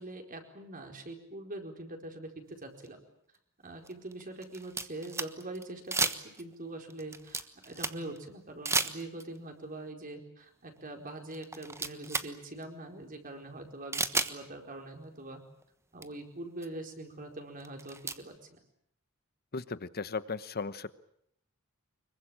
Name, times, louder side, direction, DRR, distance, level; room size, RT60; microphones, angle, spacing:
voice 1, 0.0-3.0 3.6-6.1 6.4-15.4 15.9-18.6, right 2 dB, 40° right, 4 dB, 4.6 m, -43 dB
sound 1, 2.8-2.9 3.8-5.6 5.9-6.5 6.9-8.2 8.6-9.4 10.8-10.9 11.3-12.3 12.6-12.7 13.9-14.3 15.6-15.7 16.0-16.1 16.6-16.7 17.6-18.2, right 3 dB, 15° right, 1.2 m, -32 dB
voice 2, 19.5-20.9, left 4 dB, 50° left, 14 dB, 1.0 m, -36 dB
25.5 x 22.5 x 8.9 m, 0.75 s
head